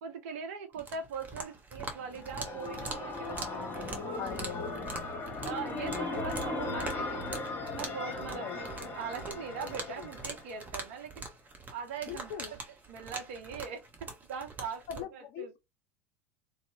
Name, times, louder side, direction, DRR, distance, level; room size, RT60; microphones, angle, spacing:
voice 1, 0.0-4.9 5.4-7.3 7.7-11.2 11.7-13.8 14.3-15.6, right 6 dB, 65° right, 0.7 m, -41 dB
sound 1, 0.7-15.0, right 3 dB, 20° right, 0.8 m, -44 dB
sound 2, 1.9-10.7, left 2 dB, 30° left, 1.2 m, -38 dB
voice 2, 3.3-5.1 5.7-6.1 8.4-8.6 12.1-12.5 15.0-15.1 15.3-15.6, left 9 dB, 50° left, 0.5 m, -42 dB
2.6 x 2.0 x 2.6 m
figure-of-eight pair, 75°, 8 cm